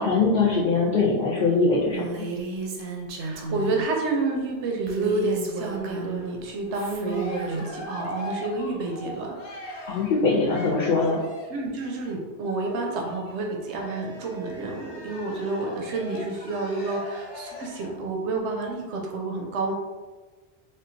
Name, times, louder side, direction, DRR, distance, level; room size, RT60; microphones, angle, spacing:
voice 1, 0.0-2.1 9.9-11.2, left 3 dB, 60° left, -5 dB, 0.7 m, -22 dB
Female speech woman speaking, 1.9-3.9 4.9-6.3 6.7-7.7, right 3 dB, 60° right, 0.6 m, -33 dB
voice 2, 3.2-9.4 11.5-19.7, right 3 dB, 85° right, 1 dB, 0.9 m, -29 dB
Cheering, 6.6-11.7 12.4-18.0, left 1 dB, 90° left, 1.0 m, -40 dB
3.6 x 2.2 x 2.6 m, 1.3 s
omnidirectional pair, 1.1 m